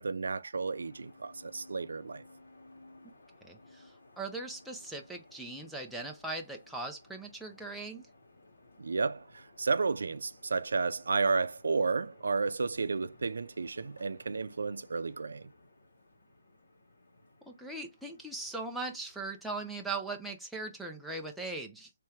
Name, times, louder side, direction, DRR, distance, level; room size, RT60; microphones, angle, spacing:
voice 1, 0.0-2.2 8.8-15.5, right 4 dB, 75° right, 0.4 m, -32 dB
sound 1, 0.6-20.2, left 2 dB, 85° left, 1.9 m, -59 dB
voice 2, 3.4-3.9 4.2-8.1 17.5-21.9, right 3 dB, ahead, 0.3 m, -39 dB
3.3 x 3.2 x 3.4 m
hypercardioid pair, 180°, 0 cm